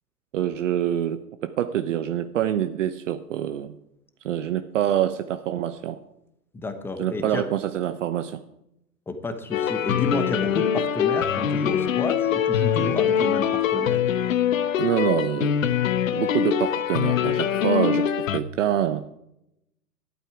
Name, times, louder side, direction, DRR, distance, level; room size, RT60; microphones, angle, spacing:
voice 1, 0.3-3.8 4.2-6.0 7.0-8.4 14.8-15.8 16.1-19.1, right 10 dB, 50° right, 10 dB, 0.9 m, -26 dB
voice 2, 6.5-7.4 9.1-14.0, left 2 dB, 5° left, 8 dB, 0.9 m, -30 dB
sound 1, 9.5-18.4, left 9 dB, 55° left, 1.0 m, -23 dB
14.0 x 12.0 x 4.9 m, 0.83 s
hypercardioid pair, 125°, 47 cm